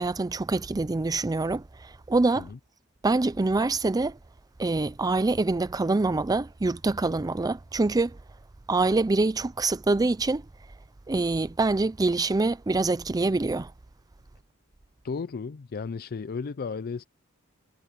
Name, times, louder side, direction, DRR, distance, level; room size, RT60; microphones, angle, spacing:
voice 1, 0.0-2.5 3.0-4.2 4.6-8.2 8.7-10.4 11.1-13.7, right 3 dB, 15° right, 0.4 m, -25 dB
voice 2, 15.0-17.0, left 5 dB, 45° left, 0.4 m, -34 dB
head